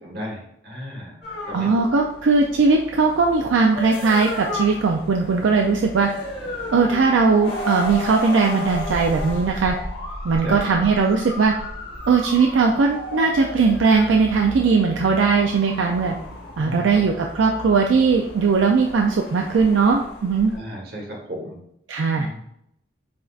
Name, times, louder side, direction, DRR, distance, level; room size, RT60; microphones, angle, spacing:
voice 1, 0.0-1.1 1.5-1.7 10.4-10.7 16.6-17.2 20.5-21.6 22.1-22.4, equal, 55° right, -1 dB, 1.3 m, -34 dB
sound 1, 1.2-20.6, left 1 dB, 60° left, 1.2 m, -34 dB
voice 2, 1.5-6.1 6.7-9.8 10.2-11.5 12.1-16.1 16.6-20.5 21.9-22.3, right 4 dB, 80° right, 1 dB, 0.4 m, -19 dB
7.5 x 2.6 x 2.4 m, 0.74 s
head